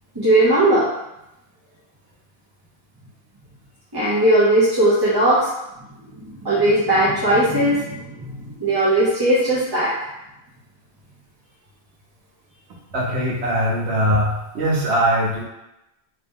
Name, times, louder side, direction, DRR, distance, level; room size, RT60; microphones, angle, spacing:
voice 1, 0.1-0.9 3.9-5.5 6.2-9.9, right 1 dB, 25° right, -11 dB, 0.7 m, -18 dB
voice 2, 12.9-15.4, equal, 85° right, -3 dB, 1.2 m, -21 dB
2.9 x 2.9 x 3.5 m, 0.92 s
omnidirectional pair, 1.1 m